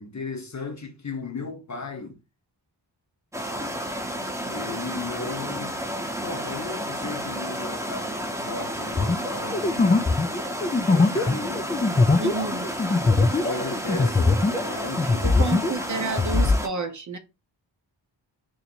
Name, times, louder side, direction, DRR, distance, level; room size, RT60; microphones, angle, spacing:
voice 1, 0.0-2.2 4.5-5.8 6.2-10.0 10.9-11.8 13.2-15.9, left 3 dB, 40° left, 0.8 m, -35 dB
sound 1, 3.3-16.7, equal, 5° right, 0.8 m, -31 dB
sound 2, 8.9-14.7 15.0-16.6, left 3 dB, 20° left, 0.3 m, -21 dB
voice 2, 12.2-12.7 15.2-17.2, right 4 dB, 40° right, 0.6 m, -30 dB
2.8 x 2.7 x 4.3 m
wide cardioid pair, 105°, 45 cm